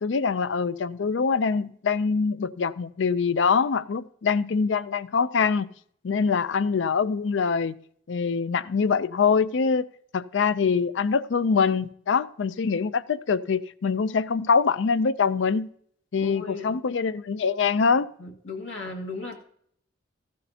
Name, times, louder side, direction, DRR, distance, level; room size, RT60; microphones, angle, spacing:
voice 1, 0.0-5.7 6.0-7.8 8.1-9.9 10.1-15.7 16.1-18.1, left 5 dB, 65° left, 16 dB, 0.4 m, -24 dB
voice 2, 16.2-16.8 18.2-19.4, left 3 dB, 85° left, 0 dB, 1.8 m, -36 dB
14.5 x 12.0 x 2.8 m, 0.65 s
head